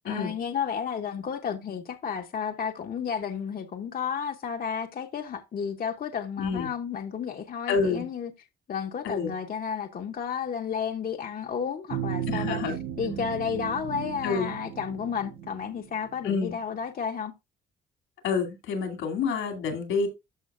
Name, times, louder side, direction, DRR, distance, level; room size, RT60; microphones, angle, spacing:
voice 1, 0.0-8.3 8.7-12.6 13.0-17.3, left 7 dB, 45° left, 0.8 m, -32 dB
voice 2, 6.4-6.7 7.7-8.1 9.0-9.3 12.3-12.8 14.2-14.5 16.2-16.6 18.2-20.1, left 5 dB, 85° left, 2.6 m, -28 dB
sound 1, 11.9-16.3, right 9 dB, 90° right, 0.9 m, -35 dB
13.0 x 5.1 x 2.5 m
cardioid pair, 90°, 20 cm